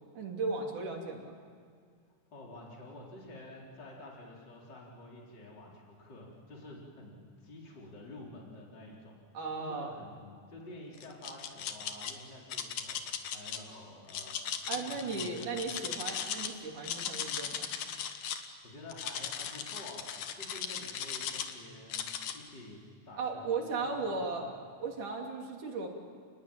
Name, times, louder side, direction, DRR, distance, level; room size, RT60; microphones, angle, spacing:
voice 1, 0.2-1.3 9.3-10.0 14.7-17.7 23.2-24.5 24.8-25.9, right 4 dB, 75° right, 1 dB, 4.4 m, -36 dB
voice 2, 2.3-14.4 14.7-15.7 18.6-20.1 20.4-22.8 23.1-24.7, left 1 dB, 35° left, -2 dB, 4.6 m, -49 dB
sound 1, 11.0-12.1 12.5-13.6 14.1-16.5 16.8-18.5 18.9-21.5 21.9-22.3, left 8 dB, 85° left, 3.0 m, -37 dB
29.0 x 20.0 x 9.0 m, 2.1 s
omnidirectional pair, 3.6 m